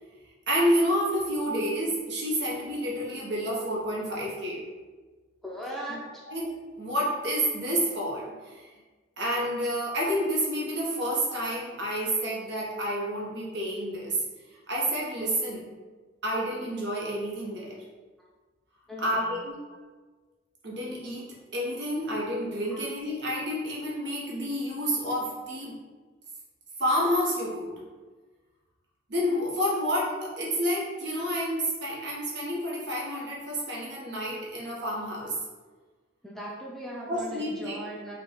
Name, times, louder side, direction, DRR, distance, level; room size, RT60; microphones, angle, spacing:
voice 1, 0.5-4.6 6.3-6.5 6.8-8.7 9.2-14.2 14.7-15.6 16.2-17.8 19.0-19.6 20.6-25.8 26.8-27.7 29.1-35.4 37.1-37.7, equal, 60° right, -4 dB, 1.1 m, -29 dB
voice 2, 5.4-6.2 18.2-18.3 18.9-19.3 19.7-19.8 22.7-22.8 36.2-38.2, right 1 dB, ahead, -4 dB, 0.5 m, -39 dB
4.5 x 2.3 x 3.9 m, 1.3 s
head